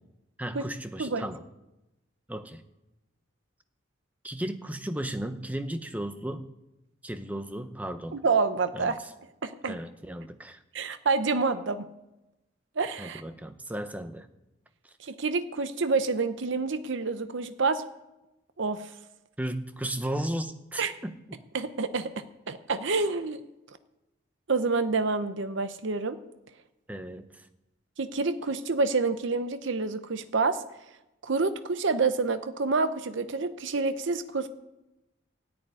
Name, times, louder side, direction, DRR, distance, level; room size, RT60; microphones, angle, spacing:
voice 1, 0.4-1.4 2.3-2.6 4.2-6.6 7.0-8.2 8.7-9.1 9.7-10.6 13.0-14.3 14.8-14.9 19.4-21.4 26.9-27.5, right 1 dB, 5° right, 9 dB, 0.7 m, -35 dB
voice 2, 8.1-9.0 9.4-9.8 10.7-11.9 12.8-13.2 15.0-17.8 18.6-18.9 20.8-21.0 21.5-22.1 22.5-23.4 23.7-23.8 24.5-26.2 28.0-30.6 31.2-34.5, right 4 dB, 65° right, 11 dB, 0.7 m, -28 dB
13.5 x 7.8 x 9.5 m, 0.97 s
head